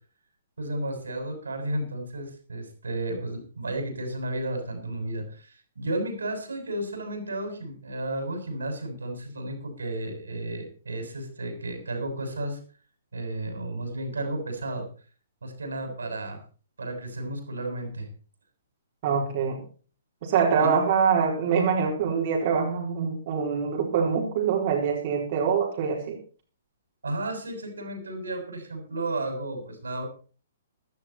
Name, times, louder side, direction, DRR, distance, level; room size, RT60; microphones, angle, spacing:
voice 1, 0.6-12.6 13.1-14.9 15.4-16.4 16.8-18.1 20.6-20.7 27.0-30.1, right 1 dB, 80° right, 5 dB, 7.1 m, -33 dB
voice 2, 19.0-19.6 20.2-26.2, right 6 dB, 50° right, -2 dB, 4.5 m, -24 dB
16.0 x 12.5 x 4.4 m, 0.38 s
hypercardioid pair, 125°, 0 cm